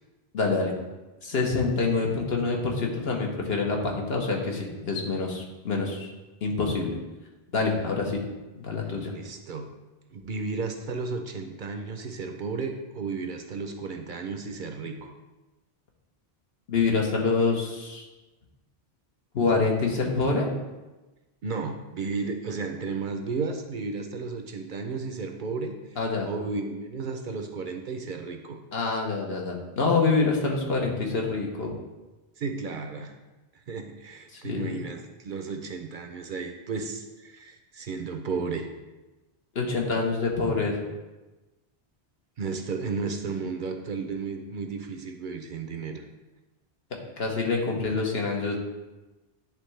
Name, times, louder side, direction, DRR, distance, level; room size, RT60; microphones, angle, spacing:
voice 1, 0.3-0.7 1.2-6.1 6.4-7.0 7.5-8.2 8.5-9.1 16.7-18.1 19.3-20.5 26.0-26.3 28.7-31.8 34.3-34.8 39.5-40.7 47.2-48.6, left 4 dB, 70° left, 0 dB, 1.2 m, -26 dB
voice 2, 9.1-9.7 10.1-15.1 21.4-25.7 26.3-28.6 32.4-33.2 33.7-38.7 42.4-46.0, right 4 dB, 60° right, 4 dB, 0.7 m, -33 dB
9.7 x 3.5 x 3.2 m, 1.1 s
omnidirectional pair, 1.1 m